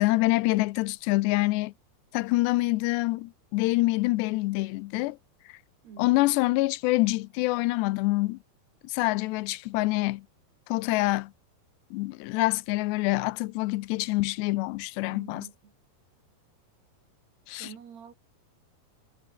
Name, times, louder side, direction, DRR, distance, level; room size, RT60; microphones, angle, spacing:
voice 1, 0.0-1.7 2.1-5.2 6.0-8.4 8.8-10.3 10.7-11.3 11.9-15.5 17.5-17.7, left 21 dB, 85° left, 2.8 m, -26 dB
voice 2, 5.8-6.5 15.0-15.7 17.5-18.1, right 7 dB, 70° right, 5.6 m, -48 dB
omnidirectional pair, 4.9 m